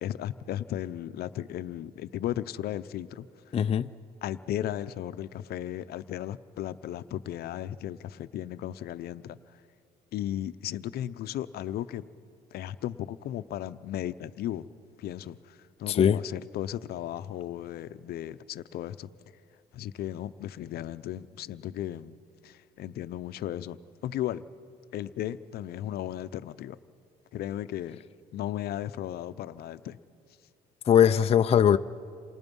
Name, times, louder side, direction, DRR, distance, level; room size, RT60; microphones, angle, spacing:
voice 1, 0.0-3.6 4.2-9.4 10.1-12.0 12.5-14.7 15.0-19.1 19.7-22.1 22.4-23.8 24.0-24.5 24.9-26.8 27.3-28.0 28.3-30.0, left 12 dB, 65° left, 0.7 m, -35 dB
voice 2, 3.5-3.9 15.9-16.2 30.9-31.8, left 9 dB, 35° left, 0.5 m, -20 dB
28.0 x 27.5 x 5.4 m
cardioid pair, 110°, 17 cm